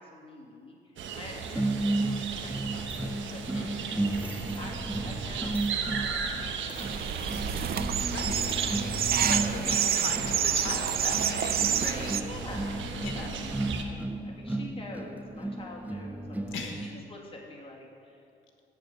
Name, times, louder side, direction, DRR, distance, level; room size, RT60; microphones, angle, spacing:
voice 1, 0.0-3.8 4.1-6.9 7.2-9.9 10.2-10.8 12.0-18.2, left 2 dB, 30° left, -2 dB, 2.7 m, -48 dB
sound 1, 1.0-13.8, right 5 dB, 70° right, 1.2 m, -36 dB
sound 2, 1.5-17.0, right 2 dB, 10° right, 0.6 m, -34 dB
sound 3, 6.8-12.2, right 9 dB, 50° right, 0.5 m, -28 dB
voice 2, 8.0-8.6 8.9-12.2 13.0-13.5 16.5-16.8, left 5 dB, 75° left, 3 dB, 1.4 m, -38 dB
9.5 x 7.4 x 8.9 m, 2.5 s
cardioid pair, 90°, 20 cm